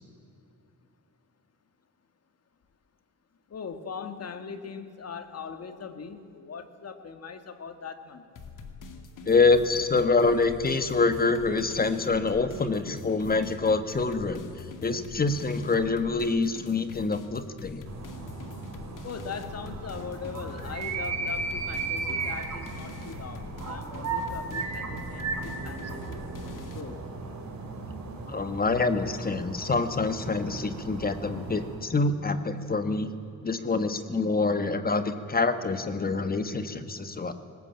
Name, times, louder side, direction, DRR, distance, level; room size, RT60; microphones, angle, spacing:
voice 1, 3.5-8.3 19.0-26.2 26.7-27.0, left 6 dB, 50° left, 9 dB, 1.8 m, -40 dB
sound 1, 8.4-26.8, left 4 dB, 75° left, 2.3 m, -44 dB
voice 2, 9.2-14.5 14.8-17.9 28.3-33.1 33.4-37.3, left 3 dB, 30° left, 10 dB, 1.3 m, -26 dB
sound 2, 17.9-31.8, right 4 dB, 60° right, 4.0 m, -36 dB
21.0 x 19.5 x 8.8 m, 2.6 s
wide cardioid pair, 135°, 32 cm